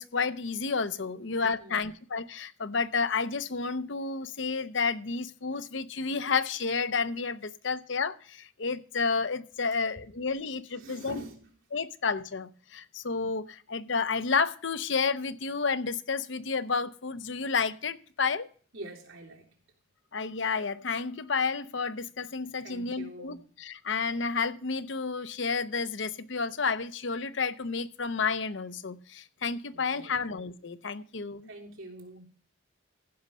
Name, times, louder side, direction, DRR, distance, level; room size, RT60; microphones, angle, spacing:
voice 1, 0.0-11.2 11.7-18.5 20.1-31.5, left 5 dB, 65° left, 0.8 m, -31 dB
voice 2, 1.1-1.9 10.7-11.5 18.7-19.5 22.6-23.5 29.7-30.2 31.4-32.3, right 1 dB, 85° right, 3.3 m, -46 dB
15.0 x 5.5 x 6.2 m
head